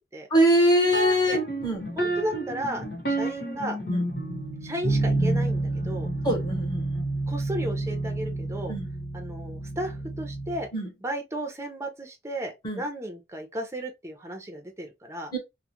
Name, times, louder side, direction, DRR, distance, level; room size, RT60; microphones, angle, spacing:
voice 1, 0.3-1.9 3.9-4.0 6.2-7.0 8.7-8.9 10.7-10.9 12.6-12.8 15.3-15.4, equal, 20° left, 1.0 m, -23 dB
sound 1, 0.9-10.7, right 2 dB, 60° left, 1.0 m, -29 dB
voice 2, 2.0-3.8 4.6-6.1 7.3-8.7 9.1-10.7 11.0-15.3, right 1 dB, 15° right, 0.5 m, -34 dB
2.3 x 2.1 x 2.8 m
head